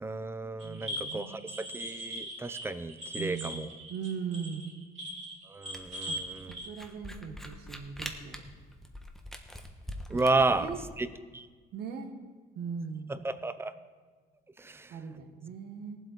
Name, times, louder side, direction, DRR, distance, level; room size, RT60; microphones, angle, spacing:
voice 1, 0.0-1.4 1.7-3.7 5.5-6.5 10.1-10.7 11.0-11.1 11.3-11.5 13.2-13.7 14.6-14.9, right 3 dB, 15° right, 13 dB, 0.6 m, -32 dB
sound 1, 0.6-6.7, equal, 45° right, 3.3 m, -40 dB
voice 2, 0.6-1.6 3.2-3.6 3.9-4.7 6.1-6.2 6.5-8.4 10.1-10.8 11.7-12.1 12.6-13.1 14.9-16.0, right 6 dB, 70° right, 5 dB, 1.7 m, -39 dB
Camera, 5.7-10.9, left 1 dB, ahead, 1.2 m, -43 dB
18.0 x 7.8 x 4.6 m, 1.5 s
cardioid pair, 110°, 17 cm